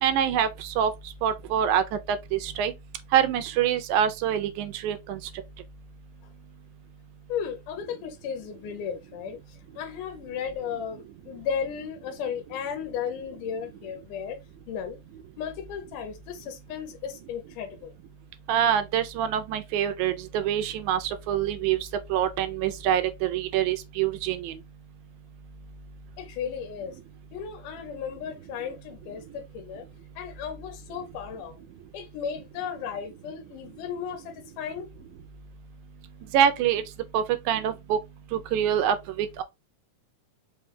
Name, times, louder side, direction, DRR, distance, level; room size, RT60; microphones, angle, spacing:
voice 1, 0.0-0.9 1.2-2.7 3.1-5.2 18.5-21.8 22.1-24.5 36.3-36.8 37.1-38.0 38.3-39.4, right 9 dB, 80° right, 1.8 m, -25 dB
voice 2, 7.3-14.4 14.7-15.0 15.4-17.9 26.2-26.9 27.3-29.9 30.2-31.6 31.9-34.9, left 7 dB, 80° left, 2.4 m, -35 dB
5.1 x 2.2 x 3.4 m
omnidirectional pair, 3.7 m